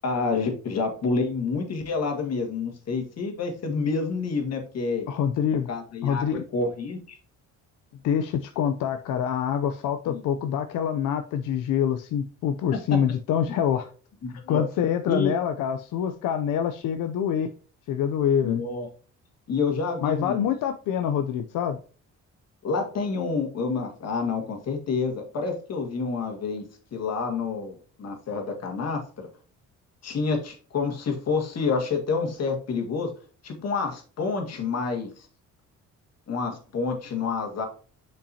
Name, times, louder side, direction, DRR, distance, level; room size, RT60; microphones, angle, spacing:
voice 1, 0.0-5.1 5.7-7.2 10.1-10.2 14.2-14.6 15.1-15.3 18.4-18.9 19.5-20.5 22.6-26.6 26.9-29.3 30.0-33.1 33.4-35.3 36.3-37.7, left 4 dB, 55° left, 1.9 m, -28 dB
voice 2, 5.1-5.7 6.0-6.4 8.0-13.9 14.5-17.5 17.9-18.6 20.0-21.8, left 8 dB, 90° left, 0.6 m, -25 dB
7.0 x 5.3 x 2.8 m
cardioid pair, 110°, 31 cm